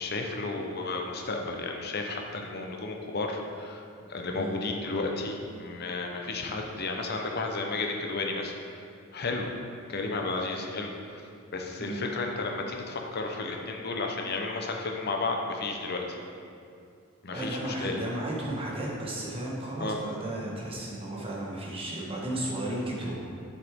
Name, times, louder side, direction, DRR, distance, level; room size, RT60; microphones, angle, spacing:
voice 1, 0.0-8.5 9.1-9.5 9.9-11.2 11.5-16.2 17.2-18.0 19.8-20.0, left 3 dB, 50° left, 2 dB, 0.8 m, -33 dB
voice 2, 17.3-23.2, right 1 dB, 25° right, -4 dB, 1.4 m, -34 dB
8.0 x 6.6 x 3.6 m, 2.4 s
head